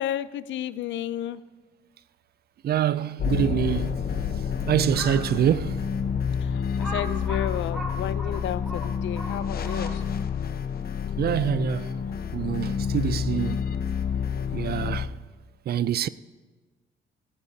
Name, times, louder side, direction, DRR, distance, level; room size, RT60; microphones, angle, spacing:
voice 1, 0.0-1.4 6.4-10.0, left 11 dB, 70° left, 0.5 m, -32 dB
voice 2, 2.6-3.9 4.7-5.9 11.2-11.9 12.3-13.7 14.5-15.1 15.7-16.1, right 10 dB, 55° right, 0.4 m, -25 dB
sound 1, 3.2-15.1, left 6 dB, 50° left, 1.0 m, -29 dB
Crow, 4.8-5.3 5.9-6.0 6.8-10.2, equal, ahead, 5.0 m, -37 dB
18.0 x 15.5 x 2.8 m
cardioid pair, 90°, 20 cm